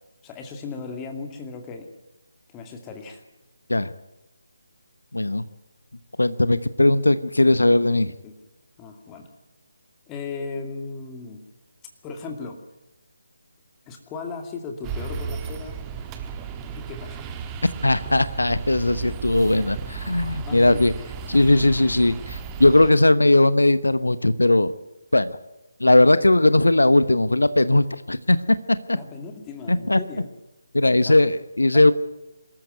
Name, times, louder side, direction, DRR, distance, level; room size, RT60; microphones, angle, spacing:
voice 1, 0.2-1.9 2.5-3.2 8.0-8.4 8.8-9.3 10.1-11.4 12.0-12.6 13.9-15.8 16.7-17.3 20.4-20.8 28.9-30.3 31.0-31.3 31.7-31.9, left 4 dB, 15° left, 5 dB, 2.4 m, -36 dB
voice 2, 5.1-5.4 6.2-8.1 17.8-20.9 21.3-24.7 25.1-25.4 25.8-28.4 28.9-29.0 29.7-30.0 30.7-31.9, left 2 dB, 70° left, 14 dB, 1.0 m, -18 dB
sound 1, 14.8-22.9, right 6 dB, 15° right, 1.5 m, -34 dB
25.0 x 14.0 x 9.5 m, 0.99 s
figure-of-eight pair, 150°, 0 cm